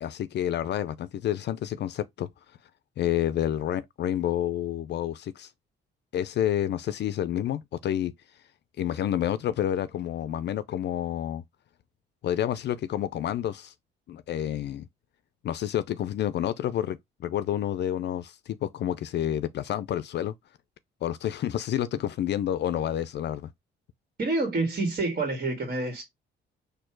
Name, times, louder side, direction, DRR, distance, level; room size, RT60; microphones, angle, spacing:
voice 1, 0.0-2.3 3.0-5.5 6.1-8.1 8.8-11.4 12.2-13.7 14.1-14.9 15.4-20.3 21.0-23.5, left 11 dB, 60° left, 0.4 m, -29 dB
voice 2, 24.2-26.0, right 2 dB, 45° right, 1.8 m, -27 dB
4.3 x 2.7 x 4.4 m
cardioid pair, 90°, 20 cm